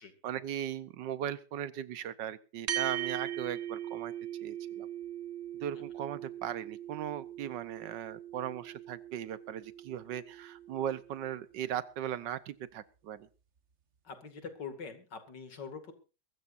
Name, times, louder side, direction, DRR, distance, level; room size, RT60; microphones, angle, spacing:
voice 1, 0.2-4.1 4.4-4.9 5.6-13.3, right 10 dB, 80° right, 16 dB, 1.6 m, -38 dB
sound 1, 2.7-11.3, right 11 dB, 45° right, 1.4 m, -40 dB
voice 2, 14.0-15.9, left 5 dB, 75° left, 8 dB, 2.9 m, -44 dB
23.0 x 13.5 x 2.6 m, 0.33 s
omnidirectional pair, 1.9 m